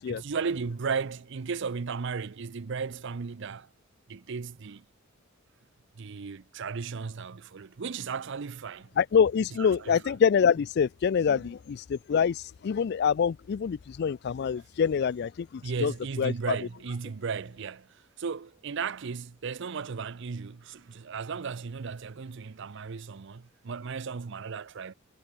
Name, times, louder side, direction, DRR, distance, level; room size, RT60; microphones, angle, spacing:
voice 1, 0.1-3.7 4.1-4.8 6.0-8.9 9.6-10.1 11.3-11.4 15.6-24.9, right 5 dB, 60° right, 0.6 m, -35 dB
voice 2, 9.0-15.9 16.2-16.6, left 7 dB, 55° left, 0.3 m, -26 dB
head